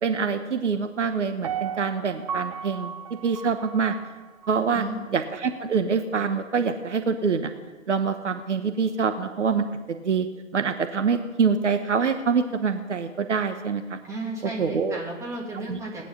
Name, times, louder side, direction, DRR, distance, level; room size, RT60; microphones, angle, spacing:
voice 1, 0.0-2.9 3.2-4.0 4.5-4.8 5.1-7.5 7.9-10.3 10.5-14.0 14.6-15.0 15.7-15.8, right 5 dB, 65° right, 8 dB, 1.2 m, -25 dB
Piano, 1.4-4.5 5.0-5.1, right 7 dB, 30° right, 0.6 m, -35 dB
voice 2, 14.0-16.1, right 2 dB, 10° right, -2 dB, 2.5 m, -34 dB
18.0 x 9.9 x 5.6 m, 1.2 s
figure-of-eight pair, 130°, 39 cm